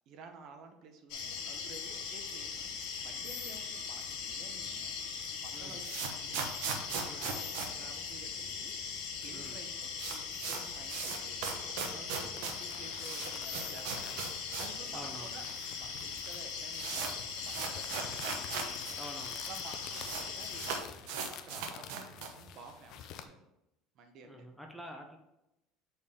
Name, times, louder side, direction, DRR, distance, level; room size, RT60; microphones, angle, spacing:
voice 1, 0.1-4.9 5.4-6.4 6.7-8.7 9.2-15.4 15.7-18.4 19.5-20.8 21.3-23.4 23.9-24.5, right 4 dB, 50° right, 5 dB, 0.9 m, -52 dB
sound 1, 1.1-20.8, left 6 dB, 75° left, 1.1 m, -40 dB
sound 2, 5.4-8.7 8.9-9.0 9.3-9.4 9.7-14.8 15.1-15.2 15.9-16.0 16.3-19.0 19.2-19.3 19.5-20.3 20.6-22.5, right 6 dB, 75° right, 1.0 m, -39 dB
sound 3, 12.2-23.3, left 9 dB, 50° left, 0.5 m, -50 dB
voice 2, 14.9-15.3 19.0-19.4 24.2-25.2, equal, ahead, 3 dB, 0.6 m, -47 dB
7.0 x 4.4 x 3.6 m, 0.89 s
cardioid pair, 155°, 0 cm